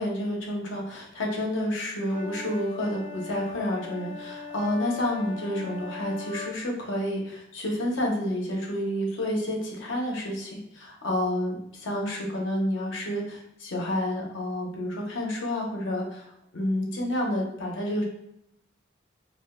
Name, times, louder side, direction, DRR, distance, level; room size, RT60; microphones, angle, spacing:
voice 1, 0.0-18.0, left 1 dB, 90° left, -1 dB, 0.7 m, -29 dB
sound 1, 2.1-6.5, left 6 dB, 35° left, 1.1 m, -39 dB
2.4 x 2.1 x 3.5 m, 0.77 s
head